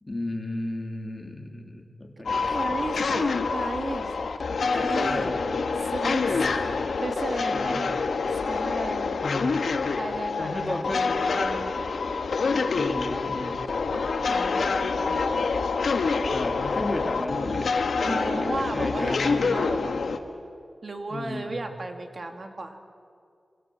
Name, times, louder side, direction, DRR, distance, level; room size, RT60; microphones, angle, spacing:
voice 1, 0.0-3.3 4.8-5.5 6.3-6.6 7.5-7.8 9.2-9.6 10.4-11.1 12.7-13.6 16.3-17.8 18.3-19.6 21.1-21.6, left 1 dB, 20° left, 2 dB, 3.2 m, -34 dB
sound 1, 2.3-20.2, left 4 dB, 85° left, 1.6 m, -26 dB
voice 2, 2.3-4.1 4.6-5.4 5.8-6.4 7.0-7.9 8.3-9.2 10.0-11.7 13.9-15.5 18.0-20.0 20.8-22.8, right 2 dB, 45° right, 5 dB, 2.4 m, -35 dB
27.5 x 26.5 x 7.8 m, 2.4 s
wide cardioid pair, 135°, 0 cm